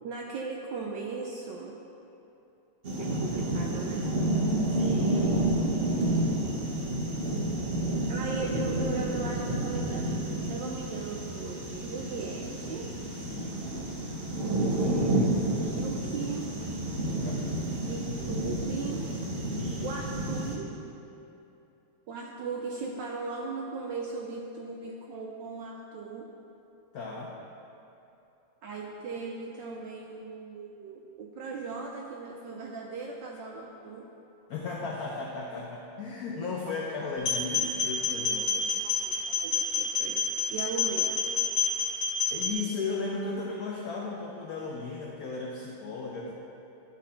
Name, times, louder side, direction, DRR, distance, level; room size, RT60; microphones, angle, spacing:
voice 1, 0.0-1.8 3.0-4.0 4.9-6.2 8.1-12.9 14.8-15.3 15.6-16.5 17.8-19.1 19.8-20.9 22.1-26.3 28.6-34.1 38.7-41.2, right 4 dB, 75° right, 0 dB, 1.0 m, -38 dB
sound 1, 2.8-20.5, right 1 dB, 45° right, 0.7 m, -30 dB
voice 2, 4.7-5.0 13.2-13.6 17.2-17.4 19.5-19.9 26.9-27.3 34.5-38.7 42.3-46.3, left 4 dB, 75° left, -2 dB, 0.8 m, -35 dB
sound 2, 37.2-42.5, left 5 dB, 50° left, 1.9 m, -28 dB
11.5 x 4.1 x 4.2 m, 2.8 s
omnidirectional pair, 2.4 m